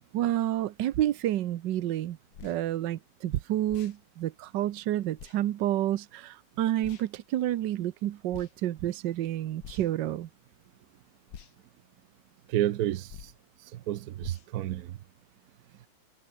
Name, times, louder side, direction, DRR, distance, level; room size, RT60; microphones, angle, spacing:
voice 1, 0.1-10.3, right 13 dB, 85° right, 1.5 m, -29 dB
sound 1, 2.3-2.6 3.7-4.0 5.2-5.4 6.8-7.1 8.3-8.5 9.6-10.0 11.3-11.5 13.1-13.4 14.2-14.5, left 8 dB, 90° left, 2.1 m, -46 dB
voice 2, 12.5-13.3 13.6-15.0, right 13 dB, 65° right, 1.1 m, -31 dB
omnidirectional pair, 1.9 m